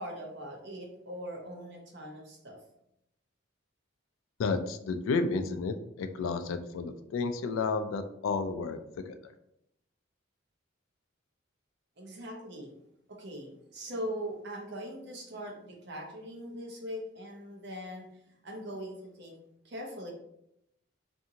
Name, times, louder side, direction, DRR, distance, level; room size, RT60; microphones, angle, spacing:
voice 1, 0.0-2.6 12.0-12.7 13.1-18.1 18.4-19.4 19.6-20.1, equal, 55° right, 0 dB, 0.7 m, -41 dB
voice 2, 4.4-8.8 9.1-9.2, left 4 dB, 80° left, 9 dB, 0.3 m, -31 dB
2.6 x 2.5 x 2.7 m, 0.79 s
head